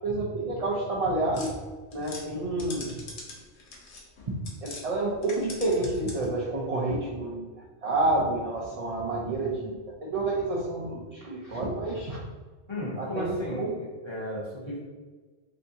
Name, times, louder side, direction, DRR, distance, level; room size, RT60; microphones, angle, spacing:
voice 1, 0.0-1.6 1.9-3.0 4.3-7.5 7.8-12.2 13.0-13.3 13.6-13.7, right 2 dB, 45° right, -5 dB, 0.5 m, -29 dB
sound 1, 1.3-4.9 5.2-6.4, left 3 dB, 85° left, 1.0 m, -43 dB
voice 2, 12.7-14.8, equal, 30° left, -5 dB, 0.7 m, -35 dB
3.5 x 2.7 x 2.7 m, 1.3 s
omnidirectional pair, 1.1 m